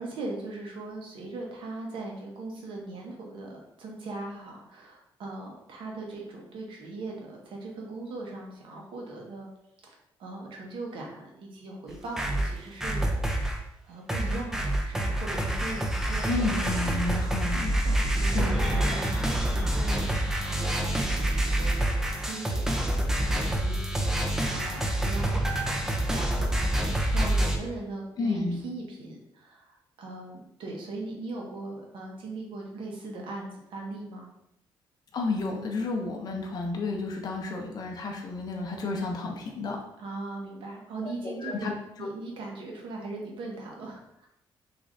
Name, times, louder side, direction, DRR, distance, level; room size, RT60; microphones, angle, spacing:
voice 1, 0.0-9.5 9.9-10.0 10.2-17.7 18.1-20.2 20.4-25.5 25.8-26.6 27.1-34.3 40.0-41.7 42.0-44.3, right 2 dB, 70° right, -1 dB, 0.8 m, -39 dB
sound 1, 11.9-13.6 14.1-27.6, right 1 dB, 5° right, 0.3 m, -27 dB
voice 2, 16.3-18.0 18.2-19.3 28.2-28.6 35.1-39.8 41.2-41.7 42.0-42.1, left 3 dB, 45° left, 1 dB, 0.5 m, -32 dB
3.1 x 2.4 x 2.5 m, 0.80 s
cardioid pair, 125°, 9 cm